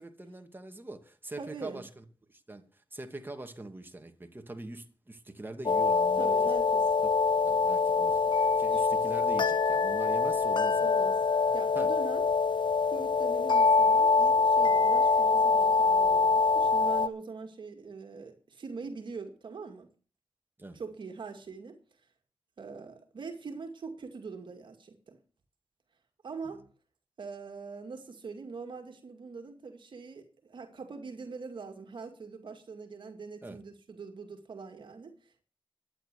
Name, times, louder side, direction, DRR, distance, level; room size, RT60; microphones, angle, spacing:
voice 1, 0.0-2.0 2.3-6.5 7.0-7.1 7.4-10.9 11.8-11.9 20.6-20.8 26.4-26.5 33.4-33.6, right 2 dB, 25° right, 2.5 m, -43 dB
voice 2, 1.4-1.8 6.2-6.9 8.6-8.9 10.3-10.4 10.8-12.3 12.9-19.9 20.7-22.0 22.6-25.2 26.2-26.6 27.2-35.4, right 4 dB, 65° right, 2.2 m, -43 dB
sound 1, 5.7-17.1, left 4 dB, 65° left, 1.2 m, -24 dB
12.0 x 9.8 x 6.9 m
cardioid pair, 50°, 9 cm